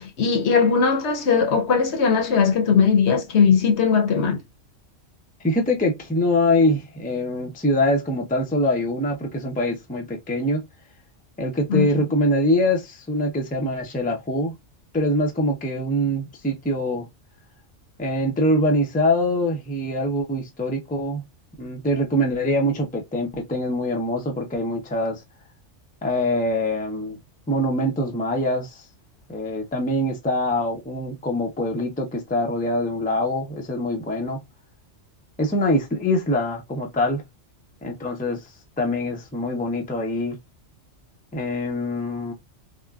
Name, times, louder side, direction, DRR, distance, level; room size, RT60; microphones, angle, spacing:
voice 1, 0.0-4.4 11.7-11.9, left 6 dB, 70° left, 1.0 m, -19 dB
voice 2, 5.4-10.6 11.4-14.5 14.9-17.1 18.0-21.2 21.6-25.2 26.0-27.2 27.5-28.8 29.3-34.4 35.4-37.2 37.8-38.4 38.8-40.4 41.3-42.3, left 1 dB, 10° left, 0.4 m, -24 dB
3.5 x 2.1 x 2.3 m
omnidirectional pair, 1.2 m